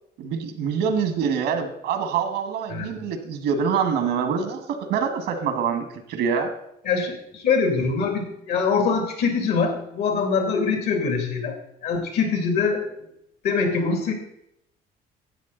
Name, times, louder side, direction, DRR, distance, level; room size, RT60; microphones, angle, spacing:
voice 1, 0.2-6.5, right 6 dB, 80° right, 7 dB, 1.7 m, -25 dB
voice 2, 6.8-11.6 11.8-13.0 13.4-14.1, left 5 dB, 75° left, 4 dB, 2.6 m, -23 dB
12.5 x 8.4 x 3.9 m, 0.79 s
cardioid pair, 110°, 17 cm